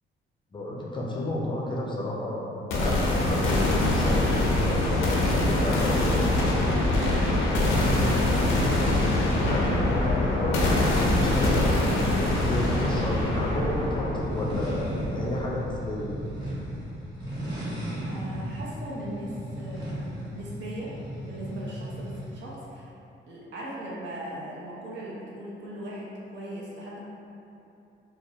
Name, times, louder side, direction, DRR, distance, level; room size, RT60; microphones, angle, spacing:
voice 1, 0.5-5.2 5.5-6.5 9.4-16.2, left 1 dB, 25° left, -5 dB, 0.4 m, -32 dB
sound 1, 2.7-16.6, left 1 dB, 90° left, 0.4 m, -24 dB
voice 2, 7.6-8.3 18.0-20.9 21.2-22.9 23.3-27.0, right 1 dB, 65° right, -6 dB, 0.7 m, -38 dB
sound 2, 10.1-22.5, equal, 20° right, 1.1 m, -36 dB
2.5 x 2.0 x 2.6 m, 2.8 s
cardioid pair, 90°, 20 cm